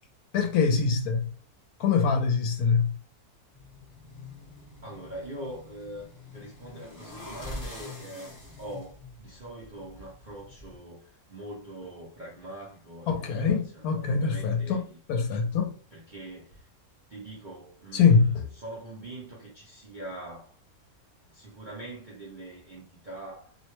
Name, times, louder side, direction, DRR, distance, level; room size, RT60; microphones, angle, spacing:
voice 1, 0.3-1.2 1.8-2.9 13.1-14.8 15.1-15.7 17.9-18.4, left 5 dB, 75° left, 1.1 m, -23 dB
sound 1, 3.5-10.8, left 2 dB, 15° left, 0.7 m, -45 dB
voice 2, 4.8-15.0 15.9-16.7 17.1-20.6 21.3-23.6, right 1 dB, 55° right, 0.5 m, -43 dB
2.7 x 2.1 x 3.0 m
omnidirectional pair, 1.7 m